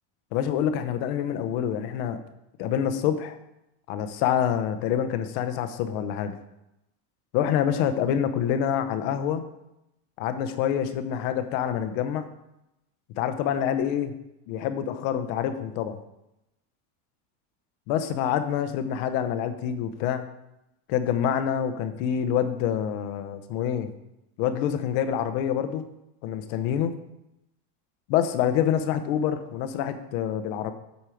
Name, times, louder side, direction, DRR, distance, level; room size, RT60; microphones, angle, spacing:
voice 1, 0.3-2.2 2.6-3.4 3.9-6.3 7.3-9.4 10.2-12.3 13.2-14.1 14.5-16.0 17.9-20.2 20.9-23.9 24.4-25.8 26.2-26.9 28.1-30.7, left 9 dB, 65° left, 9 dB, 0.9 m, -26 dB
8.3 x 4.5 x 4.9 m, 0.89 s
supercardioid pair, 135°, 47 cm